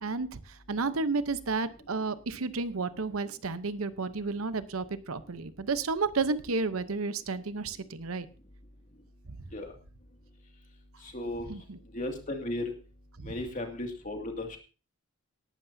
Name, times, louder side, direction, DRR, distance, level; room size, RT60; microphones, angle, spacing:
voice 1, 0.0-0.4 0.7-8.3 11.5-11.8 13.2-13.3, right 4 dB, 80° right, 13 dB, 0.8 m, -32 dB
voice 2, 11.1-11.5 11.9-12.7 13.2-14.6, left 1 dB, 35° left, 3 dB, 2.3 m, -35 dB
18.0 x 11.5 x 2.7 m, 0.34 s
head